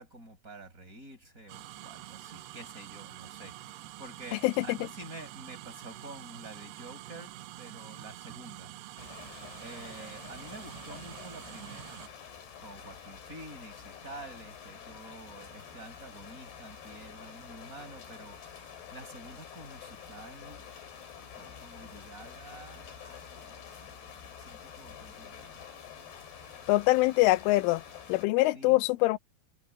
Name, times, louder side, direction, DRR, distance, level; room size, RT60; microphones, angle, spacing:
voice 1, 0.0-8.7 9.6-12.0 12.6-20.7 21.1-25.6 28.5-28.8, right 2 dB, 15° right, 6.6 m, -49 dB
sound 1, 1.5-12.1, right 15 dB, 80° right, 2.3 m, -46 dB
voice 2, 4.4-4.8 26.7-27.8 28.1-29.2, left 20 dB, 90° left, 3.2 m, -24 dB
sound 2, 9.0-28.3, left 7 dB, 55° left, 5.5 m, -48 dB
omnidirectional pair, 5.5 m